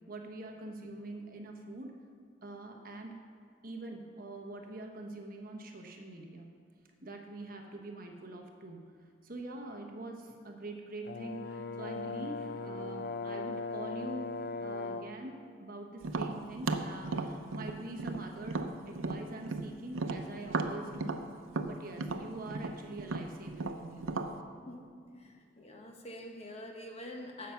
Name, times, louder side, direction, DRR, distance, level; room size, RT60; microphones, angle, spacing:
voice 1, 0.1-2.0 2.4-3.2 3.6-6.5 7.0-8.8 9.2-14.3 14.6-21.2 21.7-24.0, right 2 dB, 45° right, 3 dB, 1.1 m, -44 dB
Brass instrument, 11.0-15.2, left 3 dB, 45° left, 0.5 m, -38 dB
Tap, 16.0-19.7 20.0-24.3, right 3 dB, 90° right, 0.7 m, -35 dB
voice 2, 25.2-27.5, left 1 dB, 30° left, 2 dB, 1.2 m, -46 dB
15.0 x 5.8 x 5.8 m, 2.3 s
head